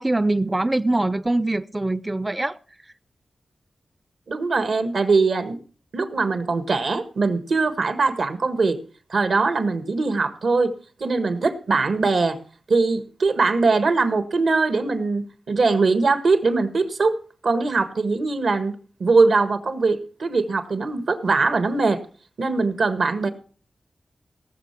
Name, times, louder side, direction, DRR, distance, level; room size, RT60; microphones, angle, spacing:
voice 1, 0.0-2.6, right 2 dB, 20° right, 0.5 m, -23 dB
voice 2, 4.3-5.6 5.9-8.8 9.1-10.7 11.0-12.4 12.7-17.2 17.4-18.7 19.0-22.0 22.4-23.3, right 3 dB, 80° right, 1.5 m, -21 dB
17.5 x 6.8 x 5.9 m
cardioid pair, 55°, 0 cm